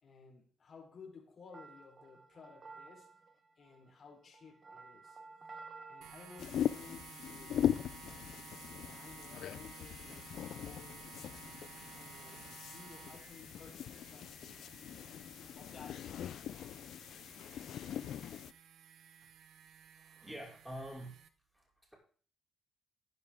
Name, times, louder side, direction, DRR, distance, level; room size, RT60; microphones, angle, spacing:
voice 1, 0.0-3.1 3.6-5.2 5.9-7.7 8.9-11.1 11.9-14.7 15.5-16.5, left 5 dB, 45° left, 4.0 m, -56 dB
sound 1, 1.5-6.9, right 4 dB, 35° right, 1.3 m, -53 dB
sound 2, 6.0-21.3, right 9 dB, 75° right, 1.1 m, -55 dB
sound 3, 6.4-18.5, left 10 dB, 70° left, 0.5 m, -40 dB
voice 2, 19.7-21.2 21.5-21.9, equal, 5° right, 5.3 m, -48 dB
14.5 x 10.0 x 3.7 m
cardioid pair, 90°, 0 cm